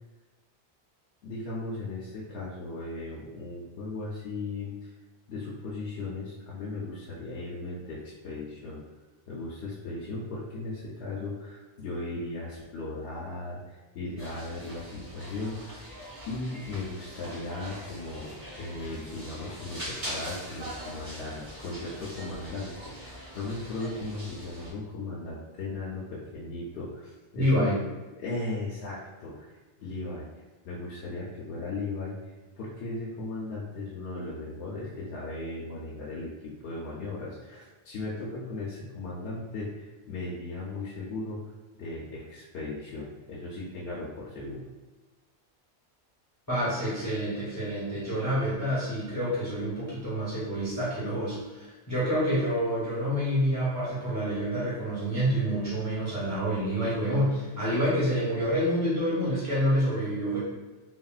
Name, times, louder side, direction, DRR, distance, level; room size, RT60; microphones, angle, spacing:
voice 1, 1.2-4.9 5.3-8.8 9.3-15.8 16.3-27.8 28.2-30.3 30.6-41.4 41.7-44.7, left 2 dB, 70° left, -6 dB, 0.8 m, -37 dB
sound 1, 14.2-24.7, equal, 55° right, 1.4 m, -42 dB
voice 2, 27.4-27.7 46.5-60.4, equal, 20° left, -10 dB, 0.7 m, -28 dB
3.4 x 2.1 x 2.3 m, 1.2 s
omnidirectional pair, 1.2 m